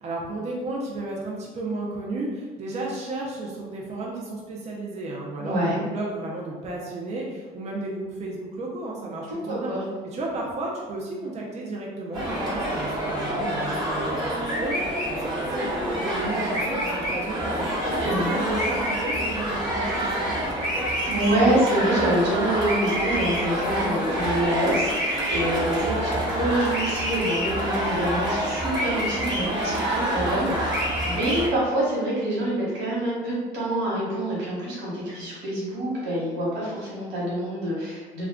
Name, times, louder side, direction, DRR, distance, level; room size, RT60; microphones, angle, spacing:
voice 1, 0.0-9.7 10.0-17.9 18.3-20.6, right 2 dB, 40° right, -3 dB, 0.5 m, -33 dB
voice 2, 5.4-5.8 9.5-9.8 17.8-18.4 21.1-38.3, right 1 dB, 90° right, -6 dB, 1.1 m, -26 dB
sound 1, 12.1-31.5, right 1 dB, 25° right, 1.2 m, -27 dB
2.3 x 2.2 x 3.5 m, 1.4 s
cardioid pair, 110°, 17 cm